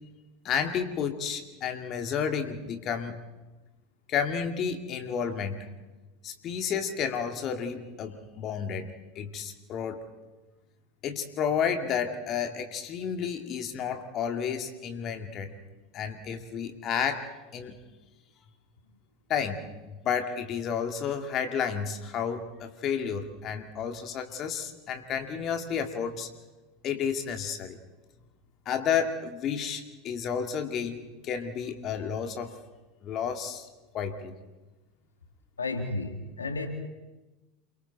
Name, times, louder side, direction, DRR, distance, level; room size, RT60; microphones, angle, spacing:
voice 1, 0.4-3.2 4.1-5.7 6.2-10.0 11.0-15.5 15.9-17.3 17.5-17.8 19.3-19.7 20.0-26.3 26.8-27.8 28.7-32.5 33.0-33.7 33.9-34.3, left 7 dB, 40° left, 5 dB, 2.1 m, -31 dB
voice 2, 35.6-36.7, left 3 dB, 85° left, 5 dB, 2.0 m, -32 dB
28.5 x 23.5 x 4.0 m, 1.1 s
figure-of-eight pair, 80°, 0 cm